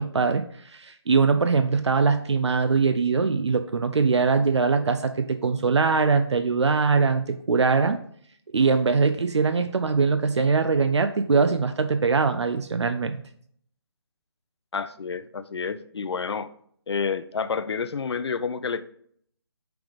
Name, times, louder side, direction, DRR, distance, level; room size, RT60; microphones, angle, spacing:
voice 1, 0.0-8.0 8.5-13.2, right 4 dB, 85° right, 9 dB, 0.5 m, -22 dB
voice 2, 14.7-16.5 16.9-18.8, left 5 dB, 70° left, 13 dB, 0.5 m, -29 dB
6.0 x 3.5 x 5.0 m, 0.63 s
figure-of-eight pair, 155°, 14 cm